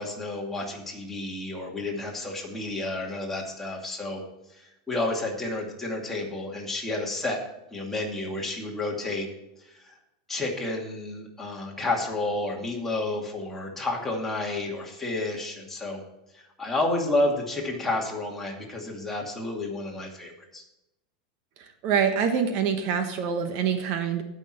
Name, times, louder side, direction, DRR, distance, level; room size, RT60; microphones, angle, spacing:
voice 1, 0.0-4.2 4.5-7.4 7.7-9.3 9.6-10.0 10.3-16.0 16.3-20.6, left 2 dB, 10° left, -2 dB, 2.4 m, -30 dB
voice 2, 21.6-24.2, right 7 dB, 50° right, 7 dB, 1.2 m, -25 dB
16.5 x 6.3 x 4.4 m, 0.91 s
supercardioid pair, 150°, 4 cm